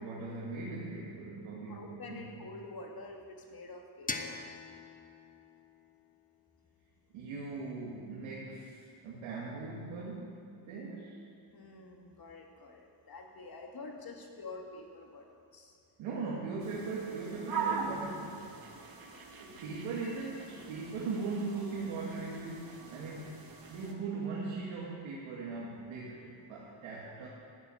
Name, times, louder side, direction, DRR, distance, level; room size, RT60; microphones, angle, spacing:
voice 1, 0.0-2.3 7.1-11.2 16.0-18.6 19.4-27.3, right 4 dB, 90° right, -5 dB, 2.2 m, -39 dB
voice 2, 1.7-4.4 11.5-15.8, left 3 dB, 45° left, 1 dB, 2.7 m, -47 dB
sound 1, 4.1-6.9, left 3 dB, 15° left, 1.0 m, -43 dB
sound 2, 16.6-23.9, right 5 dB, 45° right, 2.2 m, -42 dB
12.5 x 8.4 x 9.7 m, 2.5 s
supercardioid pair, 65°, 48 cm